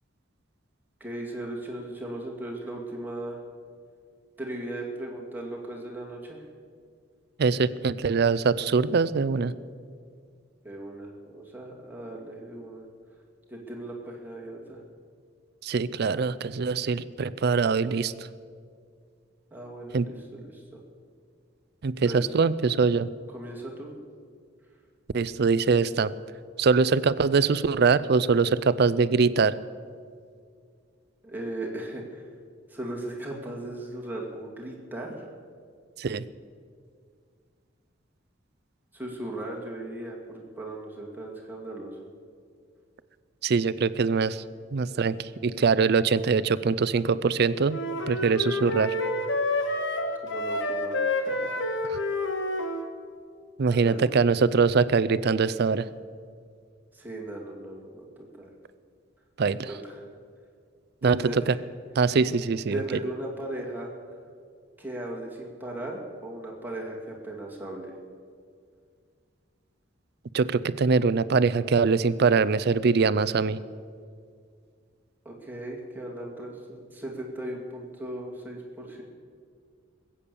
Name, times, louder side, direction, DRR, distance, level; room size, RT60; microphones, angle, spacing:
voice 1, 1.0-3.4 4.4-6.4 10.6-12.9 13.5-14.8 19.5-20.6 22.0-22.2 23.3-24.0 31.2-32.2 32.7-35.3 38.9-42.1 50.2-51.6 53.7-54.2 56.9-58.1 58.4-58.5 59.7-60.0 61.0-61.6 62.7-63.9 64.8-67.9 75.2-79.0, right 1 dB, 10° right, -2 dB, 2.4 m, -37 dB
voice 2, 7.4-9.5 15.6-18.3 19.9-20.1 21.8-23.1 25.1-26.1 26.6-29.5 36.0-36.2 43.4-44.4 44.7-47.8 48.1-49.0 51.9-52.0 53.6-55.9 59.4-59.7 61.0-61.6 62.0-62.8 70.3-73.6, right 5 dB, 55° right, 16 dB, 0.5 m, -23 dB
sound 1, 47.7-52.9, left 2 dB, 70° left, 1.4 m, -29 dB
20.5 x 8.6 x 6.9 m, 2.1 s
head